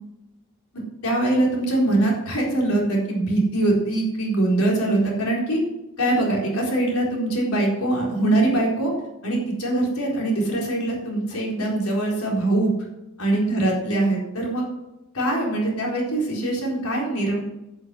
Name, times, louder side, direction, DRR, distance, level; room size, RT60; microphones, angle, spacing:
voice 1, 1.0-5.6 6.0-8.9 9.2-12.7 13.2-14.6 15.1-17.4, right 2 dB, 80° left, -2 dB, 4.3 m, -22 dB
11.5 x 6.9 x 7.8 m, 0.95 s
head